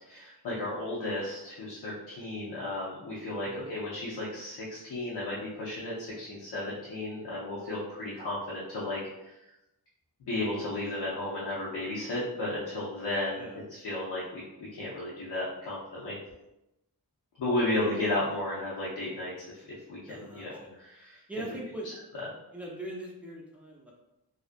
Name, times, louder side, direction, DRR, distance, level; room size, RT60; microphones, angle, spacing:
voice 1, 0.1-9.3 10.2-14.4 14.7-16.2 17.4-19.6 19.9-21.2, left 1 dB, 75° left, -7 dB, 0.7 m, -34 dB
voice 2, 13.3-13.6 17.6-18.0 20.1-20.8 21.3-21.9 22.5-23.9, right 1 dB, 5° right, -3 dB, 0.5 m, -42 dB
2.4 x 2.0 x 2.5 m, 0.91 s
wide cardioid pair, 100°, 40 cm